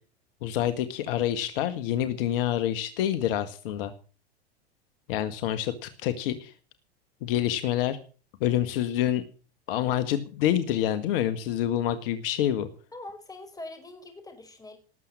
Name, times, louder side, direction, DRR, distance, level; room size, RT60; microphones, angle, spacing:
voice 1, 0.4-3.9 5.1-6.5 7.2-8.0 8.4-9.2 9.7-12.7, left 11 dB, 60° left, 1.6 m, -27 dB
voice 2, 12.9-14.8, left 2 dB, 10° left, 5.4 m, -43 dB
19.0 x 7.7 x 7.4 m
hypercardioid pair, 95°, 31 cm